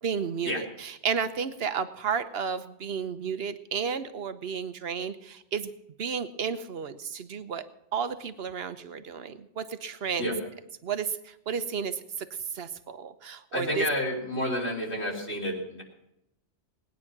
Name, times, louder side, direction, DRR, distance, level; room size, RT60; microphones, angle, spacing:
voice 1, 0.0-5.7 6.0-7.6 7.9-10.3 10.8-13.9, right 6 dB, 60° right, 11 dB, 1.1 m, -32 dB
voice 2, 13.5-15.8, left 1 dB, 65° left, -2 dB, 3.8 m, -30 dB
20.0 x 9.7 x 6.0 m, 0.82 s
omnidirectional pair, 1.2 m